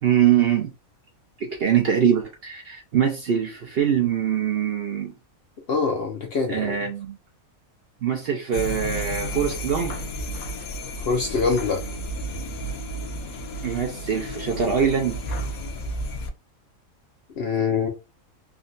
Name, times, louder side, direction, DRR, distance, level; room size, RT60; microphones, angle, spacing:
voice 1, 0.0-0.7 1.4-5.1 6.5-7.1 8.0-10.0 13.6-15.2, right 8 dB, 60° right, 0.7 m, -23 dB
voice 2, 5.7-6.8 11.0-11.8 17.4-17.9, left 5 dB, 60° left, 0.7 m, -24 dB
sound 1, 8.5-16.3, equal, 80° left, 1.1 m, -32 dB
3.6 x 2.3 x 2.5 m
omnidirectional pair, 1.4 m